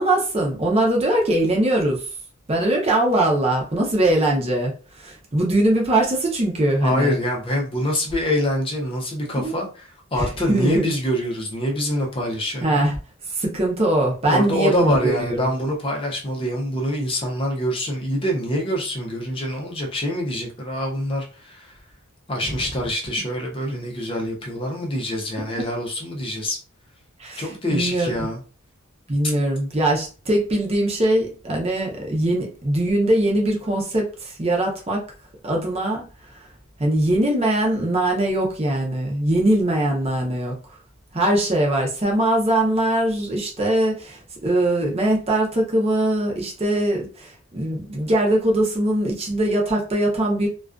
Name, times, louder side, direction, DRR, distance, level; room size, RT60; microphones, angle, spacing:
voice 1, 0.0-2.0 2.5-7.2 9.4-9.6 10.2-10.9 12.6-12.9 13.3-15.5 22.4-22.6 25.6-25.7 27.2-28.1 29.1-35.0 35.4-36.0 36.8-40.6 41.1-50.5, right 1 dB, 30° right, -1 dB, 0.6 m, -21 dB
voice 2, 6.8-9.8 10.1-12.9 14.3-21.7 22.3-26.6 27.4-28.4, equal, 25° left, 0 dB, 0.5 m, -25 dB
2.3 x 2.2 x 2.4 m, 0.36 s
head